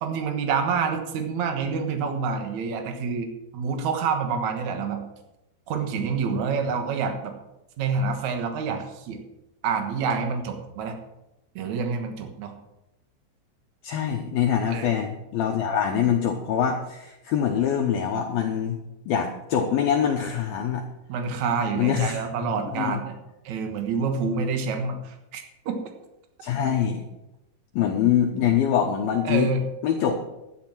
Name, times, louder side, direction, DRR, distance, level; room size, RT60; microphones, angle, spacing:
voice 1, 0.0-5.0 5.7-7.3 7.8-9.2 9.6-11.0 11.6-12.5 14.7-15.0 21.1-23.2 23.5-25.8 29.2-29.7, right 5 dB, 80° right, 5 dB, 1.6 m, -27 dB
voice 2, 13.8-18.8 19.1-20.8 21.8-22.5 22.8-23.0 26.4-27.0 27.7-29.5 29.8-30.2, left 8 dB, 85° left, 2 dB, 2.1 m, -24 dB
12.0 x 10.5 x 6.0 m, 0.92 s
omnidirectional pair, 5.6 m